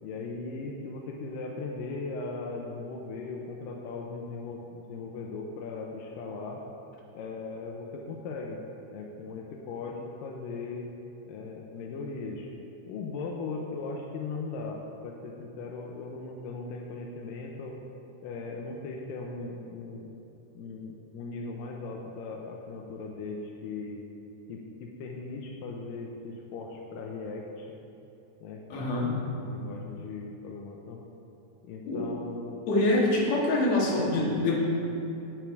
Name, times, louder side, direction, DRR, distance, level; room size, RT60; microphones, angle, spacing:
voice 1, 0.0-6.6 7.1-8.6 8.9-10.9 11.3-12.5 12.8-17.8 18.2-20.1 20.6-24.0 24.5-27.7 28.4-31.0 31.6-32.6, left 3 dB, 85° left, 0 dB, 2.4 m, -38 dB
voice 2, 28.7-29.1 31.9-32.0 32.7-34.6, left 2 dB, 55° left, -4 dB, 2.6 m, -25 dB
9.2 x 8.6 x 4.7 m, 2.9 s
omnidirectional pair, 3.9 m